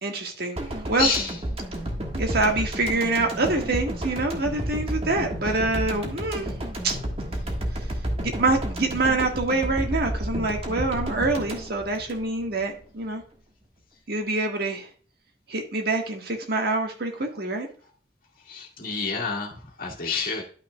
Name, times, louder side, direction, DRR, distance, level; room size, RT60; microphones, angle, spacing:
voice 1, 0.0-0.6 0.9-1.1 2.1-6.5 6.8-7.0 8.2-13.2 14.1-14.9 15.5-17.7, right 2 dB, 60° right, 3 dB, 1.6 m, -25 dB
sound 1, 0.6-12.7 13.0-13.2, equal, 35° right, 1.5 m, -31 dB
voice 2, 1.0-1.4 18.5-20.4, left 4 dB, 55° left, -1 dB, 1.9 m, -28 dB
12.0 x 5.8 x 2.3 m, 0.42 s
head